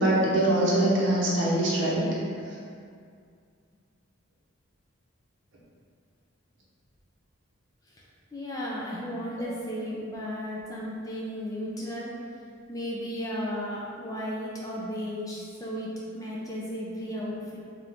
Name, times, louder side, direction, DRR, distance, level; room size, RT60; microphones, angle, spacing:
voice 1, 0.0-2.1 9.4-9.5, right 1 dB, 55° right, -6 dB, 0.9 m, -23 dB
voice 2, 8.3-12.1 12.7-15.9 16.1-17.6, equal, 15° left, -5 dB, 0.5 m, -34 dB
3.7 x 2.9 x 3.5 m, 2.3 s
head